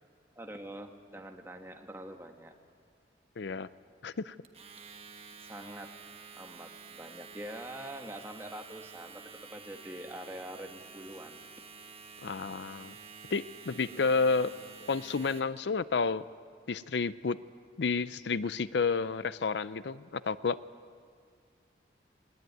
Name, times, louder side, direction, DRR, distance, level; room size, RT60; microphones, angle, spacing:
voice 1, 0.3-2.6 5.4-5.9 6.3-11.4 13.9-14.2, right 1 dB, 15° right, 4 dB, 1.5 m, -45 dB
voice 2, 3.4-3.7 4.0-4.4 12.2-12.9 13.3-14.5 14.9-16.2 16.7-17.4 17.8-20.6, left 4 dB, 75° left, 16 dB, 0.5 m, -30 dB
Domestic sounds home sounds, 4.4-15.6, right 5 dB, 30° right, 1.3 m, -50 dB
20.5 x 19.5 x 9.4 m, 2.1 s
head